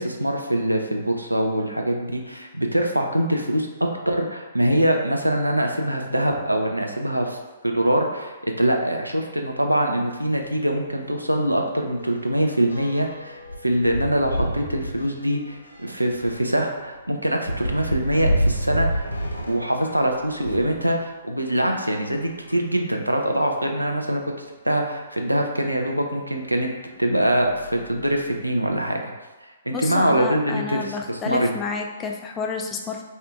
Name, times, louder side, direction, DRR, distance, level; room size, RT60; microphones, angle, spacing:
voice 1, 0.0-3.7 4.1-7.4 7.6-19.1 19.5-24.2 24.6-26.7 27.0-29.0 29.7-31.5, right 1 dB, 90° right, 2 dB, 0.4 m, -23 dB
sound 1, 10.3-10.5 10.9-11.0 11.3-20.8 21.5-22.9 23.6-23.7 23.9-24.0 25.7-25.8 26.4-26.6 27.1-28.4, equal, 85° left, 0.4 m, -30 dB
voice 2, 29.7-33.0, left 5 dB, 15° left, 1 dB, 0.3 m, -30 dB
2.7 x 2.4 x 3.3 m, 1.2 s
figure-of-eight pair, 125°, 0 cm